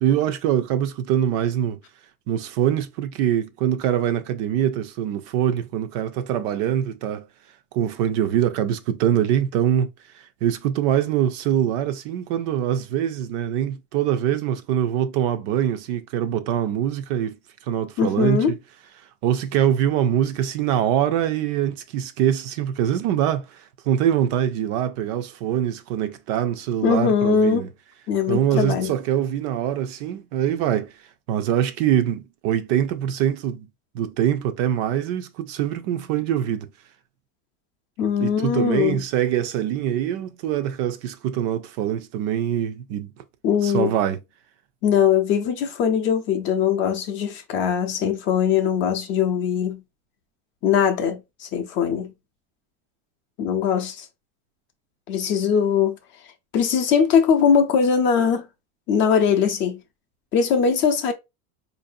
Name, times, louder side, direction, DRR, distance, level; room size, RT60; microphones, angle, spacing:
voice 1, 0.0-1.8 2.3-7.3 7.7-9.9 10.1-17.4 17.6-18.6 19.2-27.7 28.3-31.0 31.3-33.7 33.9-36.7 38.2-43.1 43.6-44.2, right 10 dB, 45° right, 0.5 m, -23 dB
voice 2, 18.0-18.5 26.8-27.6 28.1-28.9 38.0-39.0 43.4-43.9 44.8-49.8 50.6-52.1 53.4-54.1 55.1-55.9 56.5-58.5 58.9-59.8 60.3-61.1, left 7 dB, 30° left, 0.5 m, -21 dB
4.6 x 2.6 x 2.6 m
cardioid pair, 170°, 37 cm